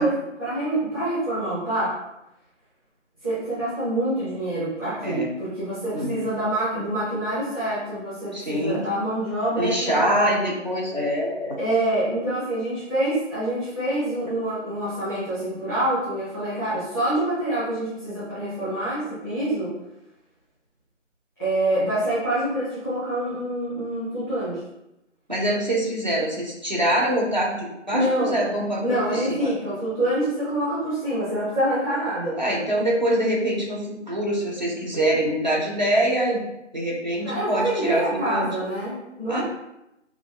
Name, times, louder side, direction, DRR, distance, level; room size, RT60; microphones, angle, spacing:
voice 1, 0.0-1.9 3.2-10.4 11.6-19.7 21.4-24.6 27.9-28.4 28.8-32.4 37.2-39.4, right 1 dB, 10° right, -17 dB, 1.2 m, -26 dB
voice 2, 5.0-5.3 5.9-6.2 8.3-8.9 9.6-11.6 25.3-29.5 32.4-36.4 36.7-38.5 39.3-39.4, right 1 dB, 35° right, -3 dB, 0.6 m, -24 dB
6.1 x 2.2 x 2.3 m, 0.89 s
figure-of-eight pair, 165°, 37 cm